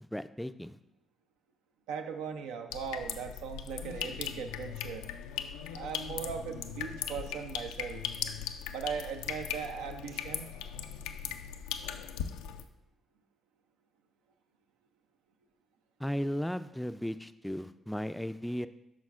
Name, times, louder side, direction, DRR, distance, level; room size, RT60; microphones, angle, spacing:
voice 1, 0.0-0.8 16.0-18.7, equal, 5° left, 11 dB, 0.4 m, -35 dB
voice 2, 1.9-5.1 5.7-8.0 8.7-10.5, right 6 dB, 80° right, 6 dB, 0.5 m, -39 dB
sound 1, 2.7-12.6, left 9 dB, 80° left, 0.3 m, -39 dB
8.3 x 5.9 x 2.4 m, 0.84 s
hypercardioid pair, 40°, 0 cm